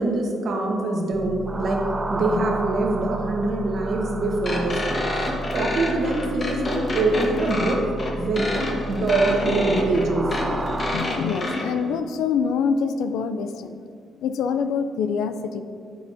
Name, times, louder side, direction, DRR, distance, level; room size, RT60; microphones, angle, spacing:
voice 1, 0.0-1.8 2.1-5.3 5.5-8.5 8.9-10.3, right 2 dB, 60° right, 0 dB, 1.3 m, -24 dB
sound 1, 1.1-11.0, right 2 dB, 20° right, 0.4 m, -32 dB
sound 2, 4.4-11.6, left 2 dB, 40° left, 1.3 m, -28 dB
voice 2, 10.9-13.8 14.2-15.6, left 6 dB, 85° left, 10 dB, 0.4 m, -25 dB
8.9 x 6.9 x 2.7 m, 2.3 s
cardioid pair, 90°, 0 cm